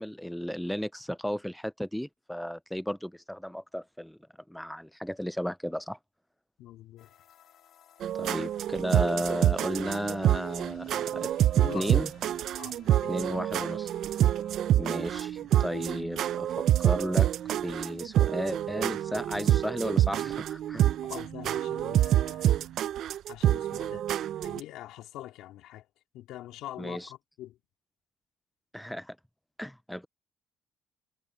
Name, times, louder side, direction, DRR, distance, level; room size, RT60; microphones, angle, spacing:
voice 1, 0.0-4.2 4.5-6.0 8.1-11.3 11.7-12.1 13.1-14.2 14.7-21.0 26.8-27.1 28.7-29.2 29.6-30.1, equal, ahead, 0.4 m, -34 dB
voice 2, 6.6-7.1 11.5-12.0 12.6-13.6 20.8-22.7 23.3-24.0 24.4-25.9 26.1-27.5, left 14 dB, 85° left, 3.1 m, -44 dB
sound 1, 7.0-14.5, left 11 dB, 55° left, 2.1 m, -57 dB
sound 2, 8.0-24.6, right 12 dB, 55° right, 0.5 m, -27 dB
cardioid pair, 175°, 0 cm